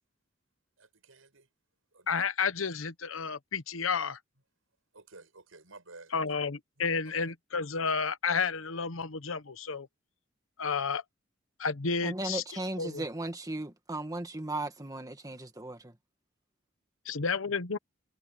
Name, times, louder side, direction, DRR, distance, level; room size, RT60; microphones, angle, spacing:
voice 1, 0.8-1.5 1.9-2.3 4.9-6.1 7.1-7.3, right 3 dB, 90° right, 6.7 m, -53 dB
voice 2, 2.1-4.2 6.1-9.9 10.6-11.0 11.6-13.0 17.0-17.8, left 5 dB, 85° left, 1.0 m, -31 dB
voice 3, 12.0-15.9, right 2 dB, 20° right, 2.0 m, -36 dB
head